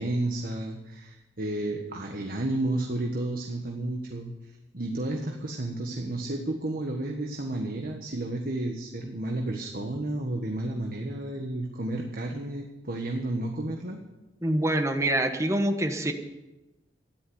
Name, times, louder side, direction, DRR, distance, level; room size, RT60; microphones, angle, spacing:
voice 1, 0.0-4.3 4.7-14.0, right 1 dB, 55° right, 2 dB, 1.5 m, -32 dB
voice 2, 14.4-16.1, right 1 dB, 15° right, 6 dB, 1.3 m, -25 dB
13.5 x 11.5 x 8.1 m, 1.0 s
head